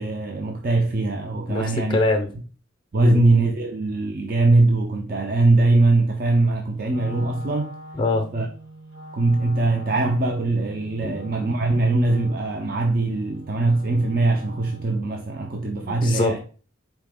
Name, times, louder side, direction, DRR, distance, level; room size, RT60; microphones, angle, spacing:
voice 1, 0.0-2.0 2.9-7.7 8.3-8.5 9.1-16.4, right 2 dB, 45° right, 0.4 m, -21 dB
voice 2, 1.5-2.3 3.0-3.2 7.9-8.3 11.0-11.1 15.8-16.4, left 2 dB, 25° left, 0.5 m, -23 dB
Wind instrument woodwind instrument, 6.8-15.0, right 1 dB, 75° right, 2.0 m, -43 dB
4.2 x 2.8 x 3.4 m
head